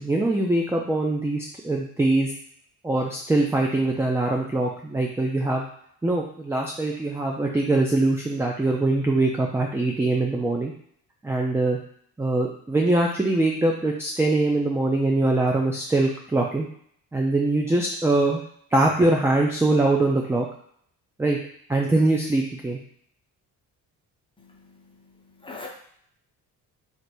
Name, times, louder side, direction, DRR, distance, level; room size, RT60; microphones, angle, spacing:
voice 1, 0.0-2.3 2.8-5.6 6.0-10.7 11.2-11.8 12.2-16.7 17.1-18.4 18.7-20.5 21.2-21.4 21.7-22.8, right 2 dB, 5° right, -1 dB, 0.4 m, -23 dB
voice 2, 24.4-25.7, left 3 dB, 15° left, -1 dB, 0.9 m, -44 dB
3.2 x 2.5 x 4.3 m, 0.65 s
cardioid pair, 95°, 37 cm